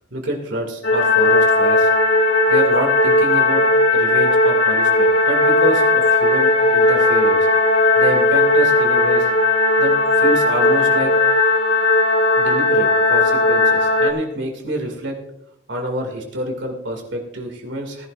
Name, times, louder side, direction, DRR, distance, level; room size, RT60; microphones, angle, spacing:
voice 1, 0.1-1.9 2.5-3.6 3.9-7.5 8.0-9.3 9.8-11.1 12.4-15.2 15.7-18.1, equal, 70° right, 2 dB, 2.4 m, -27 dB
sound 1, 0.8-14.1, left 2 dB, 85° left, 2.2 m, -16 dB
18.5 x 11.5 x 2.6 m, 0.80 s
head